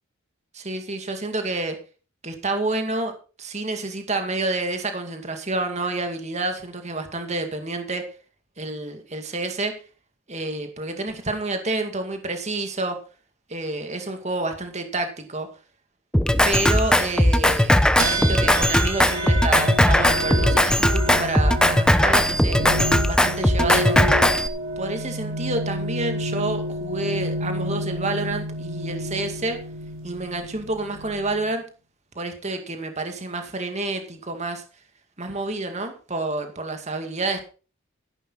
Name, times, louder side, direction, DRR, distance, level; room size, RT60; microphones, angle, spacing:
voice 1, 0.5-1.8 2.2-3.1 3.4-8.0 8.6-9.7 10.3-13.0 13.5-15.5 16.4-22.6 23.1-24.0 24.8-29.6 30.0-31.6 32.1-34.6 35.2-37.4, right 2 dB, 35° right, 6 dB, 2.3 m, -29 dB
Drum kit, 16.1-24.5, left 1 dB, 5° left, 0.9 m, -18 dB
sound 1, 18.0-31.5, right 1 dB, 75° right, 3.0 m, -30 dB
14.0 x 11.0 x 4.0 m, 0.35 s
head